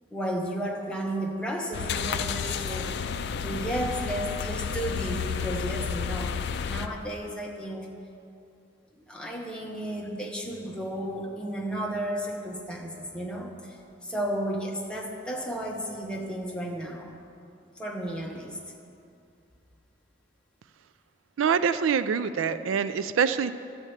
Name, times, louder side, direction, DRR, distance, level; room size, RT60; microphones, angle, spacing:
voice 1, 0.1-3.1 3.4-7.9 9.1-17.1 17.8-18.6 22.4-22.7, right 1 dB, 5° left, -1 dB, 1.1 m, -33 dB
sound 1, 1.7-6.9, left 6 dB, 60° left, 0.4 m, -31 dB
voice 2, 21.4-23.5, right 6 dB, 85° right, 12 dB, 0.4 m, -25 dB
13.0 x 4.4 x 8.1 m, 2.5 s
head